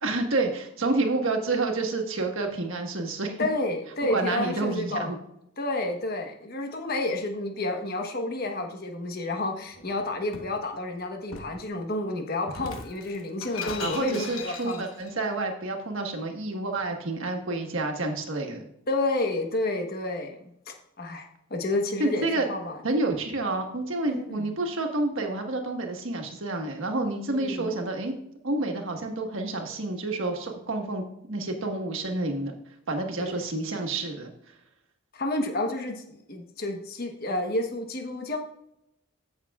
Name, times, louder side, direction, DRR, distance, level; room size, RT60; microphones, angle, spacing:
voice 1, 0.0-3.4 4.1-5.2 13.8-18.7 22.0-22.5 22.8-28.1 28.4-32.6 32.9-34.3, right 2 dB, 70° right, 3 dB, 1.5 m, -29 dB
voice 2, 3.4-5.1 5.6-14.8 18.9-20.4 20.7-22.8 24.1-24.5 27.4-27.7 33.2-33.4 35.1-38.4, left 2 dB, 45° left, 3 dB, 1.1 m, -30 dB
Shatter, 9.7-10.6 11.3-11.6 12.5-15.1, left 4 dB, 80° left, 1.1 m, -39 dB
14.5 x 6.5 x 2.4 m, 0.78 s
head